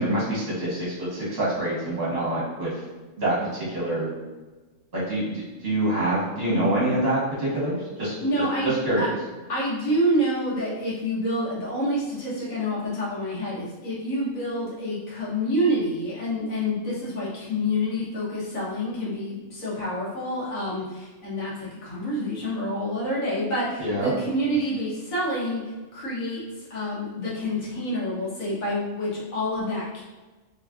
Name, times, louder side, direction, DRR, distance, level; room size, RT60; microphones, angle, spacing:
voice 1, 0.0-2.7 3.2-4.1 4.9-5.3 5.6-8.2 8.6-9.1 23.8-24.1, right 1 dB, 50° right, -7 dB, 1.3 m, -25 dB
voice 2, 8.2-9.1 9.5-26.4 26.7-30.0, equal, 90° left, -7 dB, 1.4 m, -28 dB
3.3 x 2.4 x 2.3 m, 1.2 s
omnidirectional pair, 1.4 m